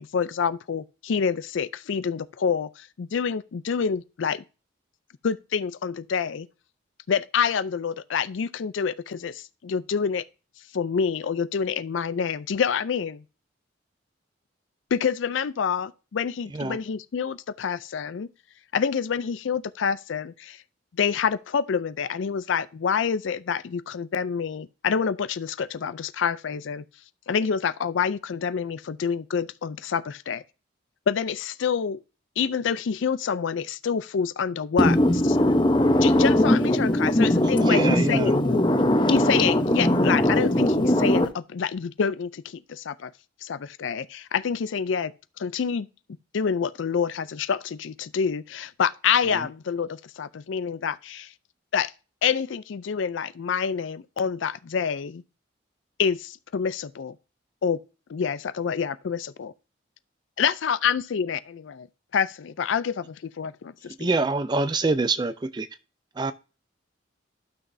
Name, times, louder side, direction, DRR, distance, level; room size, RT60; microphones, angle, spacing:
voice 1, 0.0-4.4 5.2-6.5 7.1-10.2 10.7-13.2 14.9-18.3 18.7-20.6 21.0-26.8 27.3-30.4 31.1-32.0 32.4-35.0 36.0-38.6 39.1-43.1 43.4-45.1 45.4-45.9 46.3-51.3 51.7-51.9 52.2-55.2 56.0-57.2 57.6-57.8 58.1-59.5 60.4-61.9 62.1-64.1, left 6 dB, 75° left, 0.4 m, -27 dB
voice 2, 34.8-41.3, left 1 dB, 25° left, 0.8 m, -20 dB
voice 3, 37.6-38.3 64.0-65.7 66.2-66.3, right 3 dB, 20° right, 0.3 m, -25 dB
12.5 x 6.0 x 2.7 m
head